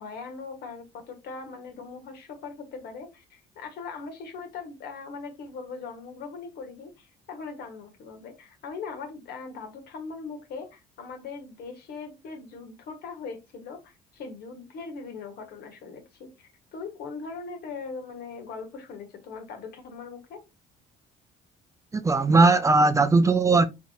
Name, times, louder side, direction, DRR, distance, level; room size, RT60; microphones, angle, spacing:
voice 1, 0.0-20.4, left 4 dB, 70° left, 1.4 m, -40 dB
voice 2, 21.9-23.7, right 3 dB, 20° right, 0.5 m, -19 dB
4.7 x 4.1 x 2.7 m
cardioid pair, 110°, 17 cm